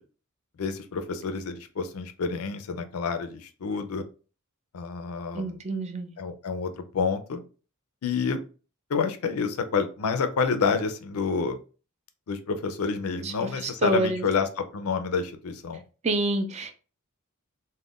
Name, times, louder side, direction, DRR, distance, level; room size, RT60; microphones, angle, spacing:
voice 1, 0.6-4.0 4.7-5.6 6.2-7.4 8.0-8.4 8.9-11.6 12.3-15.8, left 5 dB, 75° left, 9 dB, 0.5 m, -28 dB
voice 2, 5.3-6.1 13.2-14.2 16.0-16.7, right 2 dB, 30° right, 6 dB, 0.4 m, -28 dB
2.4 x 2.1 x 3.5 m, 0.36 s
head